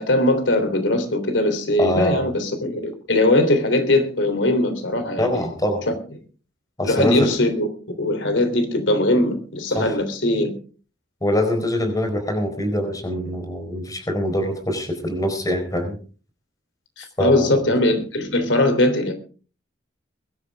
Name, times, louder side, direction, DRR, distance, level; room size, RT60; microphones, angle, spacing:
voice 1, 0.0-5.5 5.9-6.0 6.8-7.7 8.0-10.5 17.0-19.1, left 1 dB, 80° left, 8 dB, 3.4 m, -20 dB
voice 2, 1.8-2.3 5.2-5.8 6.8-7.3 9.7-10.0 11.2-16.0 17.2-17.5, left 1 dB, 20° left, 6 dB, 4.5 m, -24 dB
22.0 x 13.0 x 3.6 m, 0.38 s
head